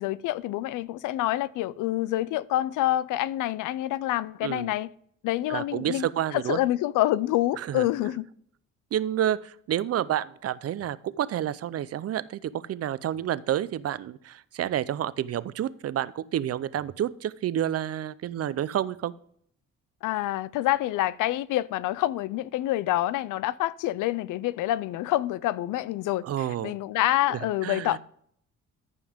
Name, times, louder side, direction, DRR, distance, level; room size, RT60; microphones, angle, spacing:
voice 1, 0.0-4.9 5.2-6.1 6.3-8.3 20.0-26.2 26.6-28.0, left 15 dB, 85° left, 0.5 m, -27 dB
voice 2, 5.5-6.6 7.6-7.9 8.9-19.1 26.2-26.8 27.3-28.0, right 11 dB, 55° right, 0.6 m, -29 dB
14.5 x 5.4 x 3.6 m
cardioid pair, 90°, 30 cm